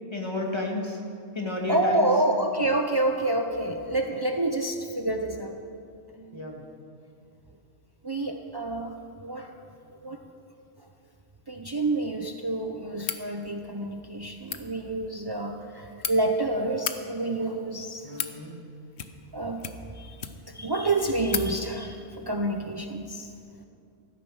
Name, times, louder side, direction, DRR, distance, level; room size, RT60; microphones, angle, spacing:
voice 1, 0.1-1.0 1.3-2.1 6.3-6.6 18.0-18.6, left 2 dB, 20° left, 0 dB, 2.0 m, -32 dB
voice 2, 1.7-5.5 6.2-6.5 8.0-8.9 9.2-9.5 10.0-10.2 11.5-18.0 19.3-19.7 20.0-20.1 20.5-23.3, right 2 dB, 40° right, 3 dB, 0.3 m, -28 dB
sound 1, 13.0-13.3 14.3-14.6 15.6-16.1 16.7-17.0 17.8-18.4 18.9-19.3 19.6-20.6 20.9-21.0 21.3-21.5, left 8 dB, 55° left, 1.0 m, -33 dB
15.5 x 13.0 x 6.2 m, 2.5 s
omnidirectional pair, 1.6 m